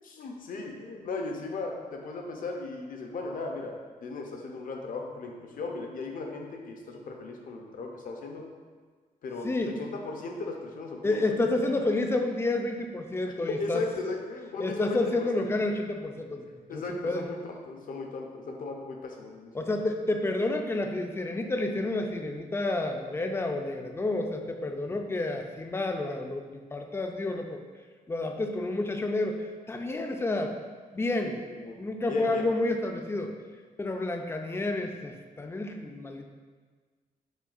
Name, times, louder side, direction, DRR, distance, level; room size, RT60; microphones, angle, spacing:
voice 1, 0.0-8.4 9.2-11.2 11.8-11.9 13.5-15.3 16.7-19.8 31.2-31.7 32.1-32.5, left 3 dB, 65° left, 2 dB, 0.6 m, -36 dB
voice 2, 9.4-9.8 11.0-13.8 14.6-17.2 19.5-27.6 28.1-30.5 30.9-31.4 31.7-33.3 33.8-36.3, left 2 dB, 15° left, 4 dB, 0.4 m, -30 dB
6.1 x 2.3 x 2.4 m, 1.5 s
cardioid pair, 95°, 15 cm